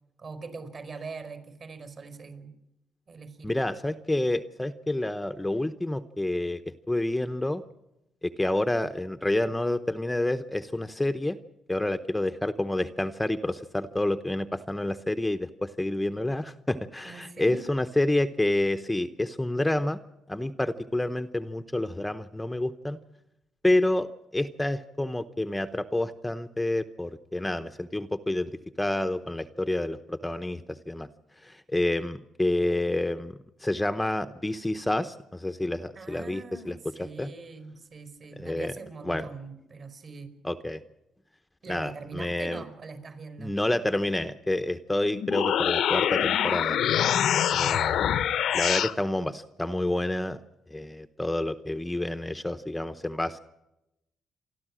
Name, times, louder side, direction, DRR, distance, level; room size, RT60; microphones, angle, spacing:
voice 1, 0.2-2.5 3.1-3.5 17.0-17.6 35.9-40.3 41.6-43.5, right 4 dB, 50° right, 9 dB, 4.8 m, -42 dB
voice 2, 3.4-7.6 8.2-11.4 11.7-20.0 20.3-23.0 23.6-28.5 28.8-31.1 31.3-37.3 38.4-38.7 39.0-39.3 40.4-40.8 41.7-42.6 43.4-46.8 47.5-48.1 48.5-50.4 50.7-53.4, left 1 dB, 10° left, 9 dB, 0.8 m, -29 dB
sound 1, 45.1-48.9, left 10 dB, 75° left, 0.9 m, -25 dB
28.5 x 12.5 x 7.6 m, 0.90 s
cardioid pair, 90°, 0 cm